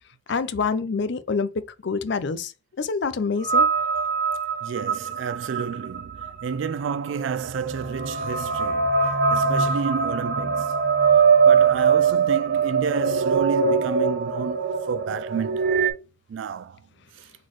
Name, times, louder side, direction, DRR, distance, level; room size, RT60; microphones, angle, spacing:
voice 1, 0.3-2.5 2.8-3.7, left 5 dB, 60° left, 0.5 m, -26 dB
sound 1, 3.4-15.9, right 5 dB, 45° right, 0.7 m, -22 dB
voice 2, 4.6-10.7 11.5-15.7 16.3-16.8, right 6 dB, 65° right, 0.3 m, -30 dB
4.3 x 3.8 x 3.1 m
head